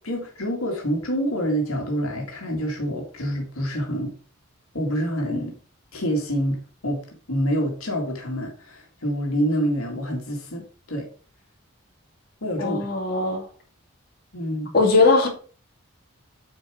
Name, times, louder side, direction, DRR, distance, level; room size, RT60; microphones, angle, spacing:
voice 1, 0.0-4.1 4.7-5.6 5.9-7.0 7.3-10.6 10.9-11.1 12.4-12.8 14.3-14.7, equal, 85° left, 2.1 m, -26 dB
voice 2, 12.6-13.5 14.7-15.3, left 3 dB, 45° left, 2.4 m, -19 dB
8.5 x 4.7 x 4.8 m
head